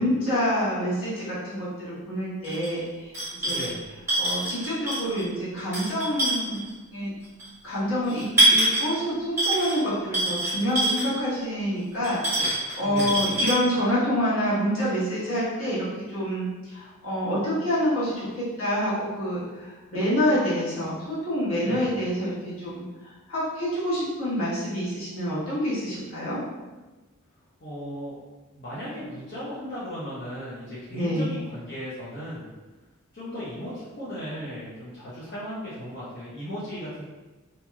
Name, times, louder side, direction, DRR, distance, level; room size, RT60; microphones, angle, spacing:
voice 1, 0.0-3.1 3.4-3.7 4.2-6.6 6.9-7.1 7.6-15.9 16.1-22.8 23.3-26.4 30.9-31.4, equal, 75° left, -10 dB, 1.3 m, -27 dB
sound 1, 2.4-2.7 3.1-3.7 4.1-5.2 5.6-6.7 7.4-7.5 8.1-9.0 9.4-9.8 10.1-11.2 12.0-13.5, right 1 dB, 15° right, 1.1 m, -24 dB
voice 2, 3.5-3.8 12.8-13.2 21.6-21.8 27.6-28.2 28.5-32.4 33.1-37.0, equal, 50° left, -11 dB, 0.7 m, -36 dB
2.9 x 2.7 x 2.3 m, 1.2 s
head